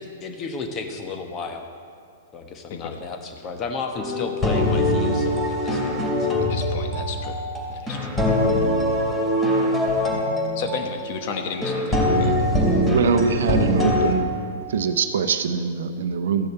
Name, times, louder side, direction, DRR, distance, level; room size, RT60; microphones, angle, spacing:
voice 1, 0.0-1.7 2.3-6.4, left 4 dB, 25° left, 5 dB, 1.2 m, -33 dB
sound 1, 3.9-14.1, left 1 dB, 10° left, 2.2 m, -22 dB
voice 2, 6.4-7.4 7.7-8.2 9.9-10.2 10.5-13.3, left 5 dB, 45° left, 6 dB, 1.1 m, -34 dB
voice 3, 12.9-14.3 14.7-16.5, right 6 dB, 60° right, 9 dB, 0.7 m, -23 dB
14.5 x 9.7 x 4.5 m, 2.3 s
figure-of-eight pair, 105°, 0 cm